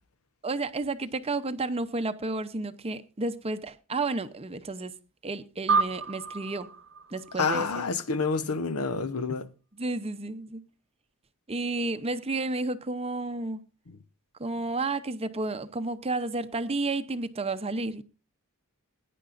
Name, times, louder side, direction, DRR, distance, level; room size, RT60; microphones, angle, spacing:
voice 1, 0.4-4.9 5.2-6.7 7.1-7.8 9.7-10.7 11.5-13.6 14.4-18.0, right 2 dB, 25° right, 0.7 m, -31 dB
sound 1, 5.7-8.4, right 4 dB, 60° right, 0.9 m, -30 dB
voice 2, 7.4-9.5, left 4 dB, 75° left, 0.9 m, -28 dB
20.5 x 10.0 x 2.5 m
head